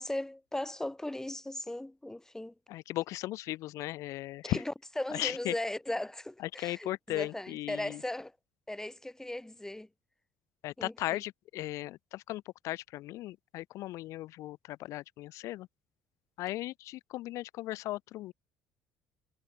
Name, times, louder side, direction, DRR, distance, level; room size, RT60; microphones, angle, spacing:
voice 1, 0.0-2.5 4.4-8.3 8.7-9.9 10.8-10.9, left 1 dB, 10° left, 3.9 m, -37 dB
voice 2, 2.7-4.6 5.1-5.6 6.4-8.0 10.6-15.7 16.4-18.3, left 16 dB, 55° left, 2.3 m, -37 dB
figure-of-eight pair, 50°, 6 cm